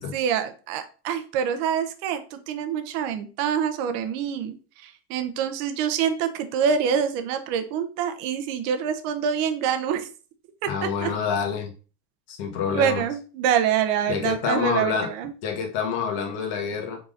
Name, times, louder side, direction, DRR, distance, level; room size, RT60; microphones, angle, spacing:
voice 1, 0.1-4.6 4.8-10.1 10.8-11.1 12.7-15.3, right 8 dB, 60° right, 8 dB, 0.8 m, -26 dB
voice 2, 10.6-11.7 12.3-13.0 14.1-15.1 15.4-17.0, left 6 dB, 55° left, 3 dB, 1.5 m, -27 dB
4.8 x 3.9 x 2.5 m, 0.37 s
supercardioid pair, 105°, 48 cm